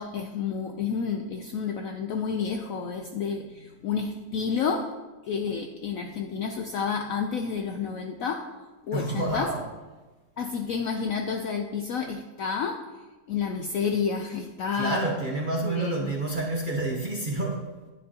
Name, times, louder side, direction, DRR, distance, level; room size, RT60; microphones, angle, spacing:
voice 1, 0.0-5.0 5.3-8.6 8.9-9.5 10.4-13.0 13.3-15.1 15.6-16.1, left 6 dB, 70° left, 0.8 m, -30 dB
voice 2, 8.9-9.7 14.7-17.9, right 2 dB, 40° right, 0.7 m, -29 dB
10.0 x 10.0 x 2.8 m
omnidirectional pair, 1.9 m